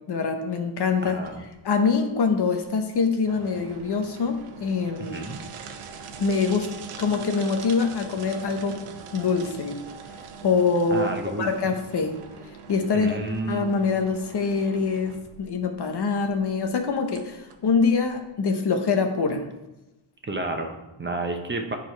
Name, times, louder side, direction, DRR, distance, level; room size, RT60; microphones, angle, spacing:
voice 1, 0.0-1.2 1.6-5.3 6.2-6.7 7.0-8.8 9.1-9.8 10.4-11.1 11.4-12.2 12.7-13.2 13.5-19.5, left 5 dB, 55° left, 5 dB, 1.0 m, -24 dB
voice 2, 1.0-1.4 5.1-5.4 10.9-11.5 12.9-13.7 20.2-21.8, right 2 dB, 25° right, 3 dB, 0.9 m, -30 dB
sound 1, 1.3-18.3, right 6 dB, 85° right, 0.9 m, -43 dB
7.8 x 4.9 x 4.5 m, 0.98 s
cardioid pair, 90°, 49 cm